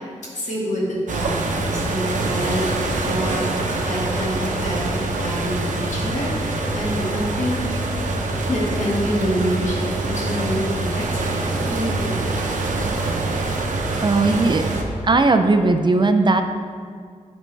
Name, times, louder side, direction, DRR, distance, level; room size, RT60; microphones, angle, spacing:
voice 1, 0.3-2.7 3.0-7.6 8.5-12.4, equal, 70° left, -5 dB, 2.0 m, -27 dB
sound 1, 1.1-14.8, right 2 dB, 85° right, 0.7 m, -25 dB
voice 2, 14.0-14.6 15.0-16.4, right 3 dB, 40° right, 7 dB, 0.4 m, -17 dB
9.6 x 5.2 x 3.3 m, 2.1 s
wide cardioid pair, 80°, 13 cm